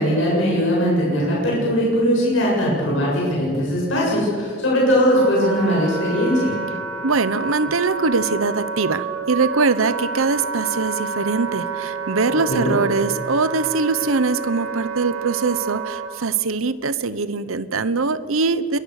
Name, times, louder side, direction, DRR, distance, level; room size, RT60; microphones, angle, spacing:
voice 1, 0.0-6.5 12.5-12.7, equal, 70° left, -4 dB, 7.7 m, -20 dB
Wind instrument woodwind instrument, 4.5-16.1, right 5 dB, 65° right, 3.3 m, -29 dB
voice 2, 7.0-18.8, right 4 dB, 85° right, 14 dB, 1.0 m, -22 dB
27.0 x 22.5 x 6.7 m, 2.1 s
head